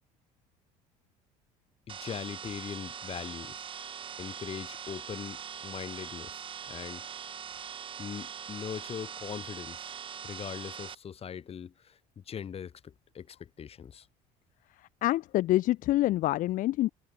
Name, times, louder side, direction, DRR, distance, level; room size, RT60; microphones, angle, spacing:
voice 1, 1.9-3.7 4.2-6.4 6.7-7.0 8.0-9.9 10.2-14.1, left 8 dB, 40° left, 6.7 m, -41 dB
sound 1, 1.9-10.9, right 8 dB, 35° right, 0.9 m, -42 dB
voice 2, 14.8-16.9, left 16 dB, 60° left, 1.0 m, -27 dB
supercardioid pair, 100°, 16 cm